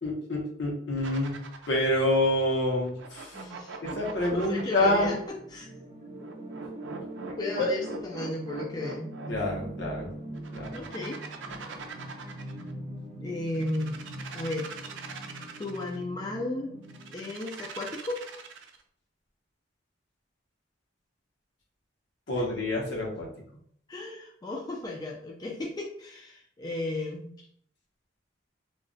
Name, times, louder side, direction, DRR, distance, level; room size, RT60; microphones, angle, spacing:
voice 1, 0.0-1.4 1.7-3.4 3.8-5.1 7.6-7.7 9.3-10.1 10.5-10.9 11.8-11.9 22.3-23.3, left 1 dB, 65° left, -1 dB, 0.8 m, -27 dB
sound 1, 1.0-1.9 2.8-5.3 6.2-9.6 10.3-12.7 13.5-16.0 16.9-18.8, right 5 dB, 75° right, 0.4 m, -42 dB
voice 2, 3.3-3.8 4.3-5.2 5.5-5.7 7.4-9.1 10.7-11.2 13.2-14.0 14.3-14.7 15.6-16.7 17.1-18.2 23.9-27.3, left 2 dB, 20° left, -1 dB, 0.3 m, -34 dB
sound 2, 5.3-17.3, right 1 dB, 35° right, 0.8 m, -42 dB
2.4 x 2.1 x 3.7 m, 0.63 s
head